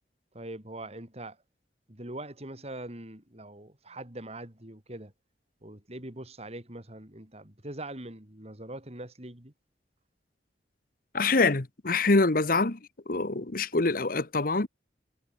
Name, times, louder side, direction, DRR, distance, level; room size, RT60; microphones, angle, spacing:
voice 1, 0.3-1.4 1.9-5.1 5.6-9.5, right 1 dB, 35° right, 3.9 m, -42 dB
voice 2, 11.1-12.8 13.1-14.7, left 3 dB, 50° left, 1.2 m, -25 dB
head